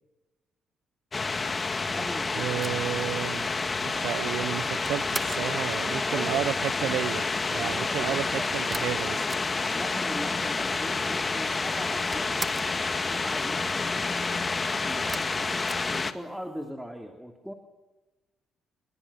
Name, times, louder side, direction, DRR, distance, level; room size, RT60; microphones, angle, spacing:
sound 1, 1.1-16.1, left 3 dB, 30° left, 1.9 m, -29 dB
voice 1, 1.8-2.5 5.8-6.4 7.5-8.5 9.7-12.3 13.1-14.6 14.9-15.2 15.9-17.5, equal, ahead, 2.9 m, -40 dB
voice 2, 2.3-3.5 3.8-7.2 7.5-9.2, right 13 dB, 90° right, 0.9 m, -32 dB
sound 2, 2.5-5.6 8.7-9.9 10.2-10.3 10.4-11.2 11.5-12.8 15.1-16.6, right 4 dB, 30° right, 1.6 m, -40 dB
29.5 x 22.0 x 7.0 m
cardioid pair, 90°, 0 cm